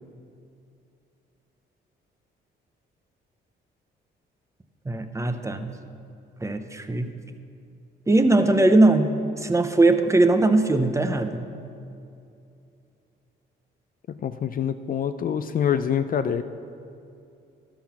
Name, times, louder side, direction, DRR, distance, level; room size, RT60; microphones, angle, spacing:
voice 1, 4.9-5.7 6.4-7.1 8.1-9.1 9.4-11.5, right 2 dB, 15° right, 7 dB, 0.7 m, -20 dB
voice 2, 14.2-16.4, left 8 dB, 45° left, 11 dB, 0.4 m, -25 dB
12.5 x 5.7 x 5.8 m, 2.5 s
cardioid pair, 90°, 20 cm